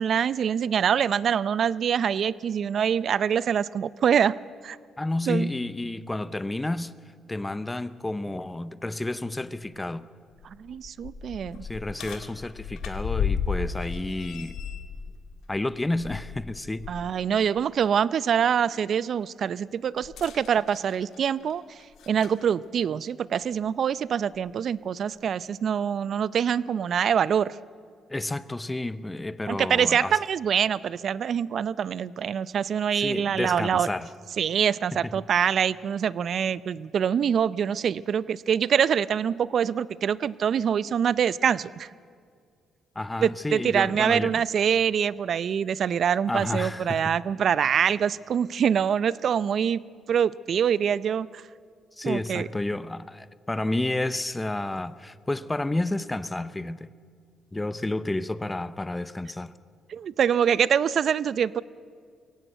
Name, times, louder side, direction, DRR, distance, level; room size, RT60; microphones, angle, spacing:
voice 1, 0.0-4.4 4.6-4.8 5.3-5.5 10.6-11.7 16.9-27.6 29.5-33.9 34.4-41.9 43.2-49.8 50.1-51.4 52.0-52.5 59.9-61.6, right 8 dB, 60° right, 0.5 m, -25 dB
voice 2, 5.0-6.9 7.3-10.1 11.6-14.6 15.5-16.9 28.1-30.2 33.0-34.1 34.9-35.1 43.0-44.4 46.3-47.2 52.0-56.9 57.5-59.5, left 2 dB, 15° left, 0.7 m, -30 dB
sound 1, 10.3-17.0 17.4-17.6 20.0-22.4 23.4-23.5 24.3-24.4, left 6 dB, 80° left, 1.9 m, -34 dB
22.5 x 17.0 x 7.8 m
cardioid pair, 90°, 0 cm